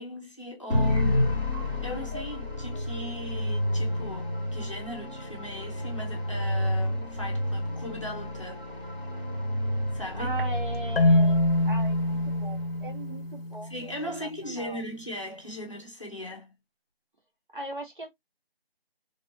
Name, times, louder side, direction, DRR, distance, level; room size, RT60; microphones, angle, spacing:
voice 1, 0.0-1.4 1.8-8.7 9.9-10.3 13.7-16.5, left 1 dB, 30° left, 0.8 m, -38 dB
sound 1, 0.7-12.9, left 1 dB, 20° right, 0.9 m, -30 dB
voice 2, 10.1-13.9 14.2-14.8 17.5-18.1, right 2 dB, 55° right, 1.3 m, -39 dB
Marimba xylophone, 11.0-13.9, left 1 dB, 65° left, 0.6 m, -25 dB
3.3 x 2.6 x 2.8 m
figure-of-eight pair, 175°, 30 cm